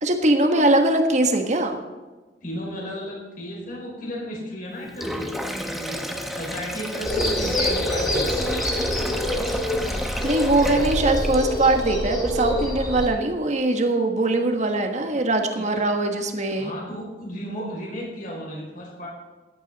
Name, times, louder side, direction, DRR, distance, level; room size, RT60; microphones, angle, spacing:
voice 1, 0.0-1.8 10.2-16.7, right 2 dB, 45° right, 5 dB, 1.5 m, -21 dB
voice 2, 2.4-6.1 6.3-9.2 10.6-10.8 15.5-15.8 16.6-19.1, equal, 50° left, -3 dB, 5.0 m, -34 dB
Sink (filling or washing), 4.8-11.7, equal, ahead, 1.0 m, -32 dB
sound 1, 7.0-13.1, left 1 dB, 25° left, 2.8 m, -26 dB
14.0 x 11.0 x 4.1 m, 1.2 s
head